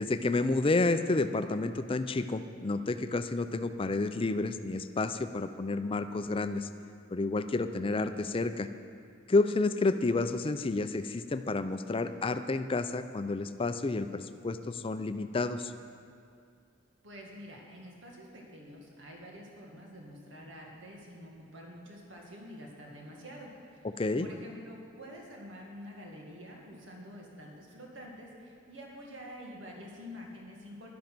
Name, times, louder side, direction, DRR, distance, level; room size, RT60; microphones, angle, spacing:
voice 1, 0.0-6.7 7.1-8.7 9.3-15.7 23.8-24.3, left 3 dB, 30° left, 11 dB, 0.5 m, -30 dB
voice 2, 17.0-23.9 24.2-30.9, equal, 75° right, -1 dB, 2.0 m, -47 dB
11.5 x 10.5 x 6.1 m, 2.4 s
head